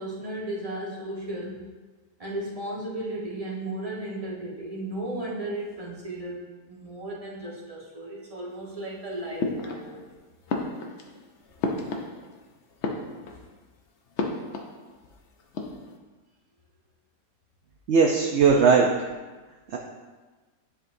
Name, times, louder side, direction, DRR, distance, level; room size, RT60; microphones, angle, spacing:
voice 1, 0.0-1.6 2.2-10.2, right 1 dB, 25° right, -5 dB, 1.4 m, -35 dB
sound 1, 9.4-10.1 10.5-12.5 12.7-13.6 14.2-15.2 15.4-16.0, left 3 dB, 55° left, 0.8 m, -32 dB
voice 2, 17.9-18.9 19.7-19.8, right 5 dB, 60° right, 0 dB, 0.7 m, -18 dB
10.0 x 5.1 x 2.7 m, 1.3 s
omnidirectional pair, 1.7 m